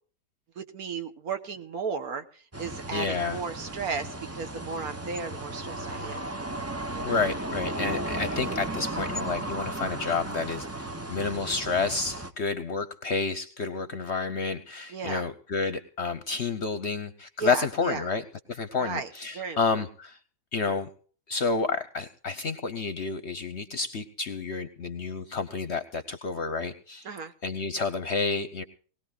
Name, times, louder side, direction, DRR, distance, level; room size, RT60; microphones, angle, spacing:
voice 1, 0.5-6.3 6.9-7.3 14.9-15.3 17.4-18.1 18.8-19.6 27.0-27.3, right 5 dB, 60° right, 8 dB, 1.6 m, -35 dB
sound 1, 2.5-12.3, right 1 dB, 25° right, 0.3 m, -35 dB
voice 2, 2.9-3.4 7.0-20.2 20.5-20.9 21.3-27.1 27.4-28.6, left 4 dB, 50° left, 11 dB, 1.0 m, -30 dB
20.0 x 18.5 x 2.4 m, 0.43 s
omnidirectional pair, 1.8 m